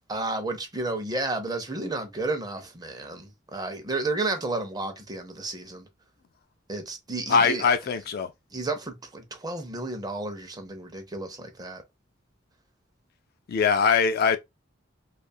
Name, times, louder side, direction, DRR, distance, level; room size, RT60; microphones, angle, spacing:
voice 1, 0.1-5.9 6.7-7.6 8.5-11.8, right 2 dB, 20° right, 0.6 m, -32 dB
voice 2, 7.3-8.3 13.5-14.4, left 6 dB, 50° left, 0.4 m, -22 dB
2.5 x 2.3 x 2.5 m
head